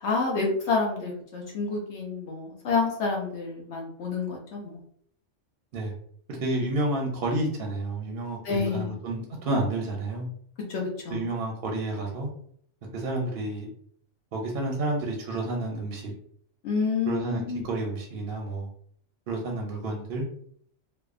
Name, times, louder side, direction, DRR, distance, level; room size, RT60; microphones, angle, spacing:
voice 1, 0.0-4.8 8.4-8.9 10.7-11.3 16.6-17.6, left 4 dB, 70° left, -1 dB, 0.9 m, -28 dB
voice 2, 6.4-10.3 11.1-12.3 12.9-13.7 14.3-16.1 17.1-18.7 19.3-20.3, right 2 dB, 60° right, 0 dB, 0.6 m, -30 dB
2.6 x 2.1 x 2.4 m, 0.63 s
omnidirectional pair, 1.2 m